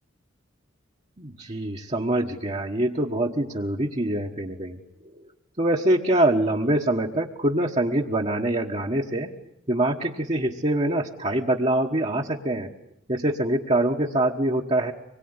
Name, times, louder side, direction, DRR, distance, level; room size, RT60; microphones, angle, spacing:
voice 1, 1.2-4.8 5.6-9.3 9.7-12.7 13.1-14.9, right 1 dB, 30° right, -1 dB, 1.4 m, -24 dB
25.5 x 22.0 x 9.7 m, 0.78 s
head